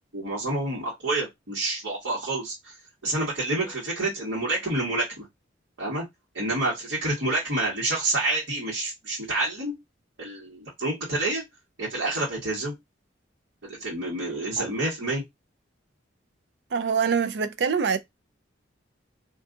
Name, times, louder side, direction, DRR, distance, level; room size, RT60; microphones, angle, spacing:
voice 1, 0.0-2.7 3.0-5.2 5.8-6.0 6.3-9.7 10.2-11.4 11.8-12.7 13.6-15.2, right 2 dB, 75° right, 1.4 m, -28 dB
voice 2, 16.7-18.0, right 6 dB, 60° right, 0.4 m, -24 dB
2.6 x 2.4 x 3.6 m
head